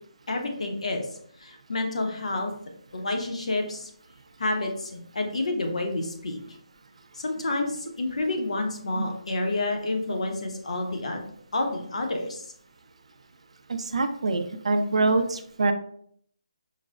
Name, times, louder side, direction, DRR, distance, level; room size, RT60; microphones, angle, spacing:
voice 1, 0.3-1.1 1.4-2.5 2.9-3.9 4.4-6.4 7.1-11.2 11.5-12.5, left 2 dB, 65° left, 3 dB, 0.8 m, -29 dB
voice 2, 13.7-15.7, right 3 dB, 65° right, 8 dB, 0.4 m, -25 dB
4.7 x 2.0 x 2.3 m, 0.64 s
hypercardioid pair, 170°, 4 cm